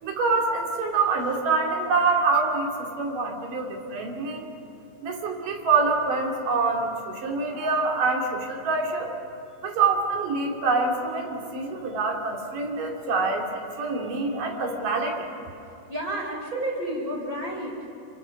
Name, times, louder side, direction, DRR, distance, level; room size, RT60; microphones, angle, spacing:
voice 1, 0.0-4.5 5.0-9.1 9.6-13.5 13.8-15.3, right 4 dB, 75° right, 1 dB, 4.5 m, -25 dB
voice 2, 15.9-17.9, right 1 dB, 25° right, -1 dB, 5.1 m, -31 dB
27.5 x 24.5 x 6.0 m, 2.9 s
omnidirectional pair, 3.8 m